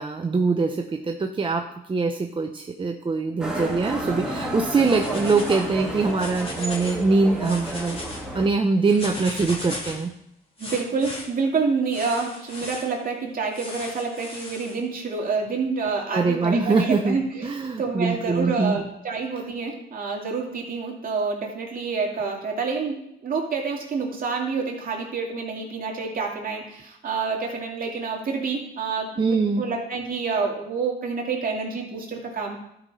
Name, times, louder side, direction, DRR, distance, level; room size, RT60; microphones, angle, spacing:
voice 1, 0.0-8.0 8.3-10.1 16.1-18.8 29.2-29.6, right 4 dB, 25° right, 4 dB, 0.7 m, -23 dB
Motorcycle, 3.4-8.5, right 1 dB, 5° right, 2.0 m, -31 dB
sound 1, 4.6-5.7 6.0-7.0 7.3-8.2 8.8-10.1 10.6-11.2 11.9-12.9 13.5-14.7, left 1 dB, 30° left, 2.6 m, -36 dB
voice 2, 10.6-32.6, right 4 dB, 45° right, -1 dB, 2.4 m, -28 dB
12.5 x 5.5 x 4.1 m, 0.78 s
cardioid pair, 90°, 20 cm